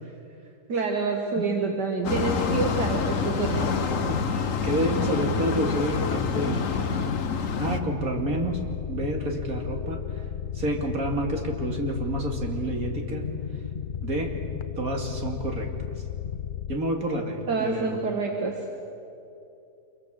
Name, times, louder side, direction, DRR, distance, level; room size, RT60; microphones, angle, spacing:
voice 1, 0.7-3.7 17.5-18.5, right 4 dB, 75° right, 1 dB, 2.3 m, -27 dB
sound 1, 2.0-7.8, left 5 dB, 50° left, 1.4 m, -27 dB
voice 2, 4.1-7.0 7.6-8.6 8.9-10.0 10.5-13.2 14.0-14.3 14.8-15.7 16.7-18.0, right 1 dB, 55° right, 1 dB, 3.1 m, -29 dB
sound 2, 7.6-16.8, left 9 dB, 85° left, 0.4 m, -34 dB
26.5 x 23.0 x 6.7 m, 2.7 s
omnidirectional pair, 1.8 m